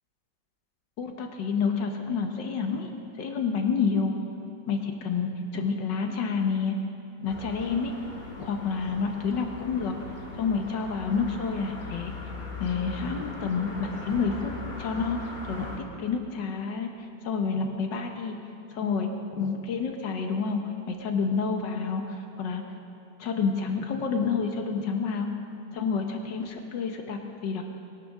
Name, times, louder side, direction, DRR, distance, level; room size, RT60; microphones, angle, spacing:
voice 1, 1.0-2.9 3.2-4.1 4.7-6.8 7.2-7.9 8.4-10.0 10.4-12.1 12.6-14.5 14.8-15.2 15.5-15.7 16.0-16.9 17.2-18.4 18.7-20.6 20.9-22.6 23.2-25.3 25.7-27.6, left 5 dB, 70° left, 4 dB, 1.8 m, -29 dB
sound 1, 7.3-15.8, left 2 dB, 25° left, 1.5 m, -40 dB
22.0 x 12.0 x 3.7 m, 2.6 s
omnidirectional pair, 2.1 m